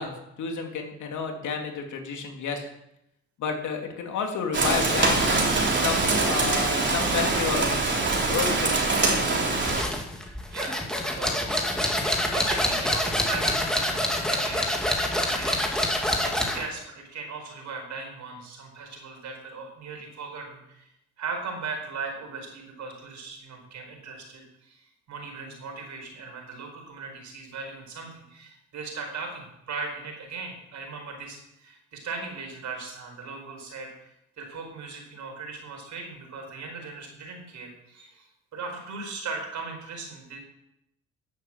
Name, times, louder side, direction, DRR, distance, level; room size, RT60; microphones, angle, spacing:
voice 1, 0.0-2.6 3.4-5.5 5.8-9.3, left 5 dB, 75° left, 3 dB, 2.5 m, -31 dB
Rain, 4.5-9.8, right 3 dB, 40° right, 3.3 m, -23 dB
sound 1, 9.7-16.7, left 1 dB, ahead, 2.2 m, -26 dB
voice 2, 11.0-11.6 12.3-20.9 21.2-34.1 34.4-40.4, right 4 dB, 70° right, 2 dB, 4.5 m, -38 dB
10.5 x 8.1 x 7.4 m, 0.82 s
cardioid pair, 90°, 30 cm